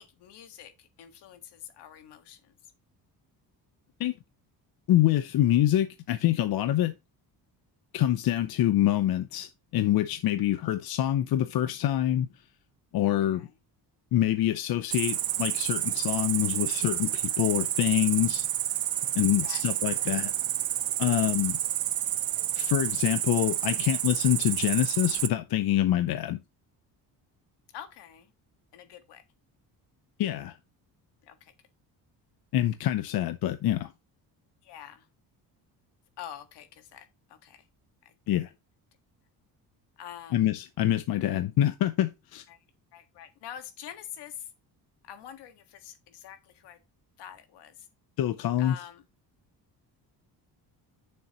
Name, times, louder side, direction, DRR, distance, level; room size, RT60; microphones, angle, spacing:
voice 1, 0.0-2.6 8.2-8.5 13.0-13.5 19.4-20.2 21.2-21.6 27.7-28.3 28.7-29.2 31.2-31.5 34.6-35.1 36.2-37.7 38.0-38.1 40.0-40.5 42.5-42.6 42.9-44.5 45.0-46.8 47.2-47.9 48.6-49.1, left 10 dB, 80° left, 1.8 m, -46 dB
voice 2, 4.9-6.9 7.9-12.3 12.9-13.5 14.1-18.5 19.1-20.3 21.0-21.6 22.5-26.4 30.2-30.6 32.5-33.9 38.3-38.5 40.3-42.4 48.2-48.7, left 12 dB, 60° left, 0.7 m, -26 dB
Cricket, 14.9-25.3, right 12 dB, 60° right, 0.9 m, -29 dB
8.9 x 7.0 x 3.0 m
cardioid pair, 115°, 40 cm